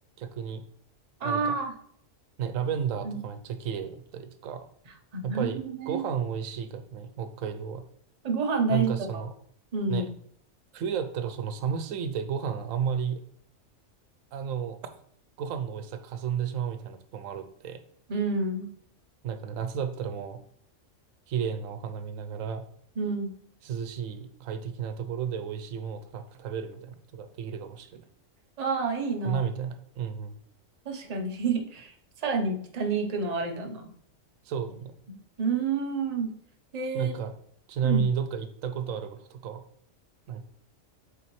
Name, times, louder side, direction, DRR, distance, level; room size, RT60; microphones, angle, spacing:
voice 1, 0.2-0.6 1.2-1.6 2.4-4.7 5.2-7.8 8.7-9.3 9.9-10.1 10.7-13.2 14.3-14.9 15.4-17.8 19.2-20.4 21.3-22.6 23.6-28.1 29.2-30.3 34.5-34.9 36.9-37.3 37.7-39.6 40.3-40.4, right 7 dB, 85° right, 10 dB, 1.0 m, -32 dB
voice 2, 1.2-1.7 3.0-3.2 5.1-6.0 8.2-9.2 9.7-10.1 18.1-18.7 23.0-23.3 28.6-29.4 30.9-31.9 32.2-33.9 35.4-36.3 36.7-37.1 37.8-38.0, right 4 dB, 35° right, 3 dB, 0.8 m, -29 dB
6.8 x 4.7 x 3.1 m, 0.64 s
omnidirectional pair, 1.3 m